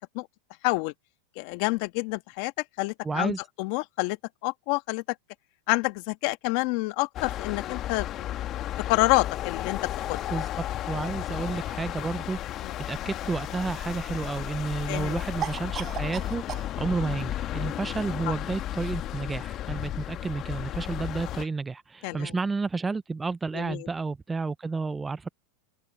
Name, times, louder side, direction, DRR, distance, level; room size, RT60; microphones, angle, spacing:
voice 1, 1.4-2.5 2.8-4.2 4.4-5.0 5.7-8.4 8.9-9.8 10.1-10.2 12.6-12.7 14.9-15.2 18.3-18.4 22.0-22.4 23.5-23.9, left 24 dB, 55° left, 1.5 m, -28 dB
voice 2, 3.0-3.4 10.3-25.3, right 4 dB, 15° right, 0.5 m, -31 dB
sound 1, 7.1-21.4, left 12 dB, 35° left, 1.3 m, -33 dB
Cough, 13.1-13.9 15.4-16.7, right 11 dB, 35° right, 4.4 m, -36 dB
open air
supercardioid pair, 125°, 0 cm